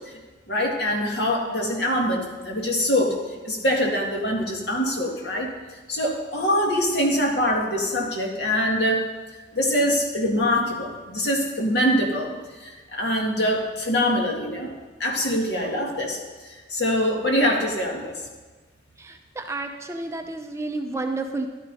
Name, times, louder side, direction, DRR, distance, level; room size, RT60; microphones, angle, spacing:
voice 1, 0.5-3.2 3.4-5.5 5.9-9.0 9.5-14.7 15.0-18.2, equal, 60° left, 0 dB, 2.0 m, -24 dB
voice 2, 19.0-21.5, right 2 dB, 15° right, 4 dB, 0.6 m, -31 dB
13.5 x 11.5 x 4.1 m, 1.3 s
head